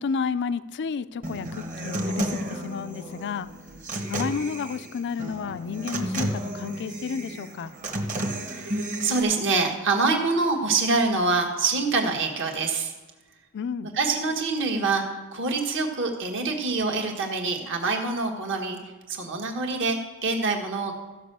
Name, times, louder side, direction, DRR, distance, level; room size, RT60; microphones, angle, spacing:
voice 1, 0.0-3.5 4.1-7.7 13.5-13.9, left 5 dB, 50° left, 14 dB, 0.4 m, -31 dB
Human voice / Acoustic guitar, 1.2-9.2, right 1 dB, 35° right, 1.3 m, -32 dB
voice 2, 8.4-12.9 13.9-15.0 15.3-18.8 19.1-20.9, right 3 dB, 55° right, 2 dB, 1.6 m, -25 dB
14.5 x 5.6 x 6.8 m, 1.2 s
head